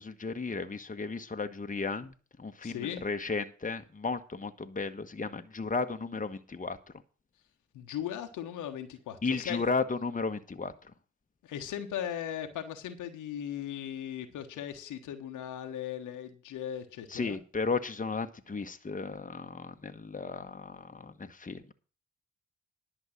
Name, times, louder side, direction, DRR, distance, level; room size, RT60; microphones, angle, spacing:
voice 1, 0.0-6.8 9.2-10.9 17.1-21.7, left 4 dB, 25° left, 1.3 m, -34 dB
voice 2, 2.6-3.0 7.7-9.7 11.4-17.4, left 10 dB, 80° left, 1.3 m, -38 dB
11.0 x 5.5 x 8.6 m
hypercardioid pair, 40°, 31 cm